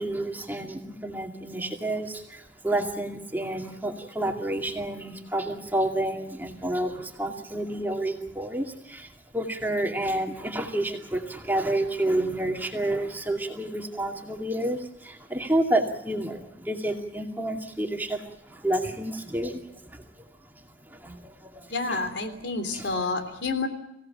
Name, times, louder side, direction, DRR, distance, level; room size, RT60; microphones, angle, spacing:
voice 1, 0.0-20.3 20.5-22.1 22.7-22.9, right 1 dB, 10° right, 2 dB, 2.3 m, -30 dB
voice 2, 21.7-23.7, left 3 dB, 75° left, 7 dB, 3.4 m, -29 dB
24.5 x 17.0 x 8.9 m, 0.87 s
head